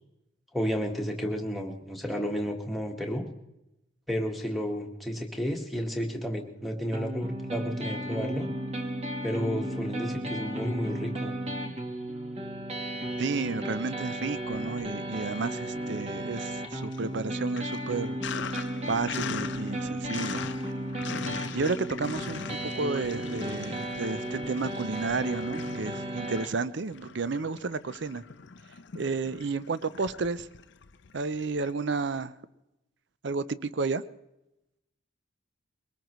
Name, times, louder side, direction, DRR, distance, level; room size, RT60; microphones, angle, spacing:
voice 1, 0.5-3.2 4.1-8.5 9.2-11.3, equal, ahead, 0 dB, 1.5 m, -32 dB
sound 1, 6.9-26.5, right 1 dB, 30° right, 1.3 m, -34 dB
voice 2, 13.2-18.2 18.9-20.5 21.5-28.2 28.9-30.5 31.1-32.3 33.2-34.0, right 4 dB, 55° right, 15 dB, 0.5 m, -32 dB
Sink (filling or washing), 14.4-15.3 15.6-31.7, left 6 dB, 55° left, 0.5 m, -42 dB
22.0 x 19.0 x 3.1 m, 0.91 s
head